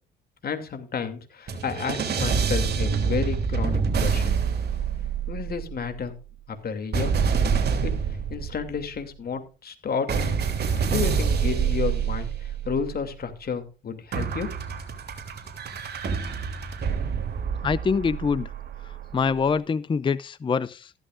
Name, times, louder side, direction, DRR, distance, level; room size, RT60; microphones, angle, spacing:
voice 1, 0.4-4.3 5.3-6.2 6.5-7.1 7.8-7.9 8.3-10.3 10.8-14.5, left 6 dB, 50° left, 2.8 m, -31 dB
sound 1, 1.5-5.7 6.9-8.8 10.1-12.9 14.1-19.1, right 6 dB, 55° right, 3.2 m, -26 dB
voice 2, 17.6-18.5 18.8-20.9, left 5 dB, 25° left, 0.5 m, -25 dB
14.5 x 12.5 x 2.6 m
cardioid pair, 90°, 20 cm